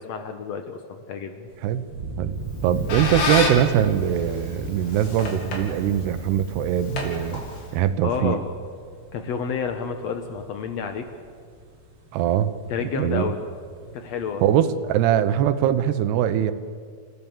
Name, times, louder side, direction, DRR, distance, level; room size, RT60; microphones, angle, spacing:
voice 1, 0.0-1.5 8.0-8.4 9.1-11.0 12.7-13.4 13.9-14.4, left 6 dB, 85° left, 6 dB, 1.5 m, -30 dB
sound 1, 1.5-14.5, right 2 dB, 40° right, 3.2 m, -38 dB
voice 2, 2.2-7.4 7.7-8.4 12.1-12.5 12.9-13.3 14.4-16.5, right 10 dB, 80° right, 12 dB, 3.0 m, -22 dB
Squeak, 2.4-7.9, left 3 dB, 65° left, 4.7 m, -30 dB
29.5 x 16.0 x 7.2 m, 2.1 s
omnidirectional pair, 4.7 m